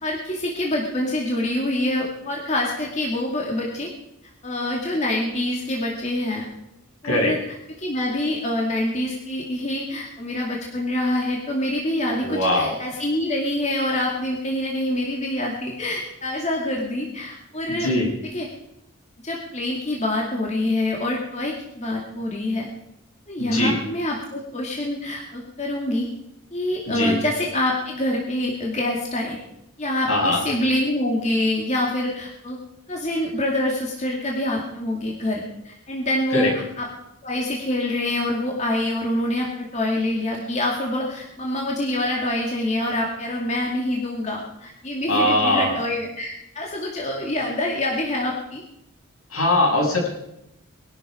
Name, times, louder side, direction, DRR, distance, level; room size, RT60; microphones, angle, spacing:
voice 1, 0.0-3.9 4.4-6.5 7.0-7.4 7.8-17.9 18.2-18.5 19.2-22.7 23.3-26.1 26.5-29.4 29.8-32.6 32.9-36.9 37.2-48.6, left 1 dB, 30° left, -2 dB, 2.4 m, -26 dB
voice 2, 7.0-7.3 12.2-12.7 17.7-18.1 23.4-23.7 26.9-27.2 30.1-30.4 36.3-36.5 45.1-45.7 49.3-50.1, left 1 dB, 75° left, -1 dB, 6.6 m, -21 dB
21.5 x 12.5 x 5.2 m, 0.84 s
head